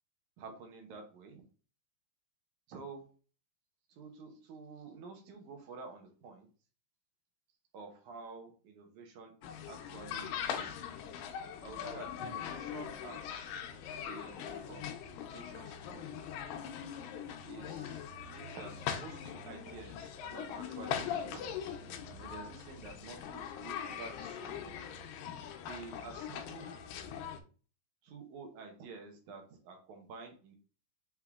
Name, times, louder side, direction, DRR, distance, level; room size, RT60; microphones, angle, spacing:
voice 1, 0.4-1.4 2.7-3.1 3.9-6.5 7.7-10.9 11.6-13.5 14.1-16.0 17.5-21.5 22.1-24.7 25.7-26.8 28.0-30.5, right 4 dB, 70° right, 3 dB, 2.1 m, -50 dB
sound 1, 9.4-27.4, left 8 dB, 85° left, 2.3 m, -41 dB
5.9 x 3.5 x 2.3 m, 0.38 s
omnidirectional pair, 3.9 m